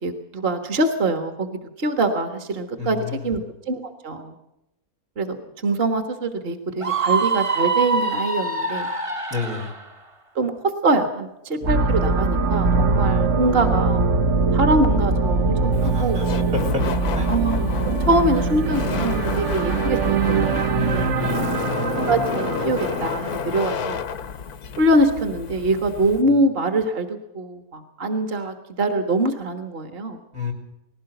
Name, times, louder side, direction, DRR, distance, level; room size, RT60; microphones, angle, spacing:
voice 1, 0.0-1.5 1.8-3.0 3.2-3.4 3.7-4.3 5.2-5.4 5.6-8.9 10.3-10.5 10.8-14.1 14.5-15.7 16.0-16.2 17.3-21.4 22.1-24.0 24.8-30.2, right 2 dB, 40° right, 7 dB, 1.7 m, -23 dB
voice 2, 2.8-3.4 9.3-9.7 15.8-16.4 16.7-16.8 17.1-17.3 20.7-21.7 26.2-26.4 30.3-30.5, left 5 dB, 80° right, 3 dB, 4.4 m, -30 dB
Screaming, 6.8-9.8, right 4 dB, 25° right, 1.0 m, -24 dB
sound 1, 11.6-23.6, right 4 dB, 55° right, 1.3 m, -22 dB
Laughter, 15.7-26.2, left 7 dB, 85° left, 1.6 m, -31 dB
19.5 x 16.5 x 7.9 m, 0.88 s
omnidirectional pair, 1.6 m